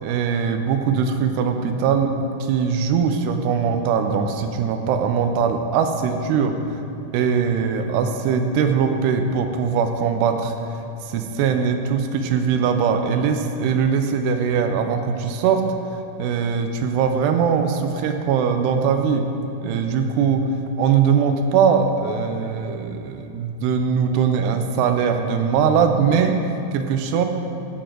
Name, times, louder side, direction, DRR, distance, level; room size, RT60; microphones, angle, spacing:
voice 1, 0.0-6.6 7.1-10.8 11.1-15.6 16.2-19.3 19.6-20.4 20.8-26.3 26.7-27.3, right 6 dB, 90° right, 6 dB, 2.8 m, -21 dB
14.5 x 6.9 x 3.8 m, 2.8 s
omnidirectional pair, 4.7 m